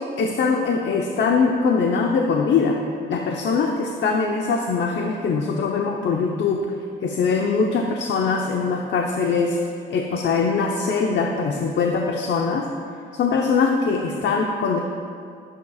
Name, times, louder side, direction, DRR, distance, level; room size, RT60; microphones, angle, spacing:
voice 1, 0.2-2.8 3.1-6.6 7.0-9.6 9.9-12.6 13.1-14.8, left 5 dB, 65° left, 1 dB, 1.0 m, -22 dB
20.0 x 9.2 x 2.5 m, 2.3 s
cardioid pair, 90°, 20 cm